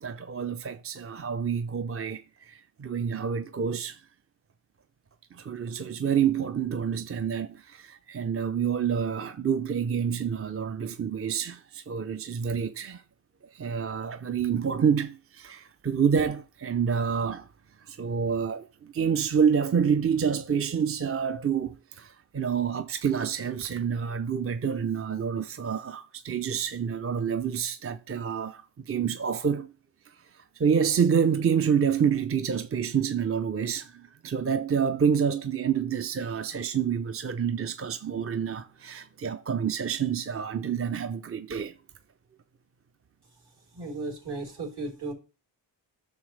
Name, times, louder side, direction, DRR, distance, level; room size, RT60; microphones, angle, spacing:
voice 1, 0.0-4.0 5.3-13.0 13.5-17.5 17.8-29.7 30.1-41.7, right 7 dB, 30° right, 0.5 m, -28 dB
voice 2, 43.7-45.1, right 2 dB, 65° right, 3.6 m, -35 dB
9.6 x 6.4 x 3.2 m
wide cardioid pair, 70°, 44 cm